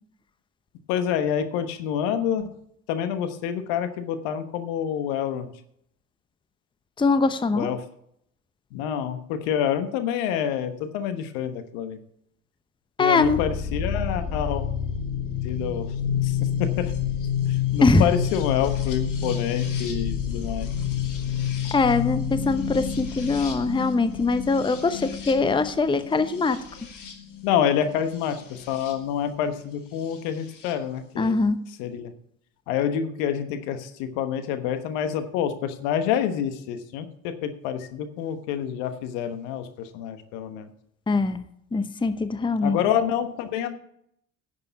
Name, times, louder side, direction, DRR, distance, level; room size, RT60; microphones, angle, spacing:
voice 1, 0.9-2.5 2.9-5.5 7.5-7.8 8.7-12.0 13.0-14.6 15.4-15.9 16.2-16.7 17.5-20.7 27.4-31.4 31.8-32.1 32.7-40.7 42.6-43.7, left 9 dB, 70° left, 9 dB, 1.2 m, -27 dB
voice 2, 7.0-7.7 13.0-13.4 17.8-18.0 21.7-26.6 31.2-31.6 41.1-41.4 41.7-42.8, left 3 dB, 10° left, 12 dB, 0.8 m, -22 dB
sound 1, 13.2-28.9 30.1-30.7, left 8 dB, 50° left, 2.6 m, -29 dB
10.5 x 6.9 x 6.9 m, 0.71 s
hypercardioid pair, 60°, 40 cm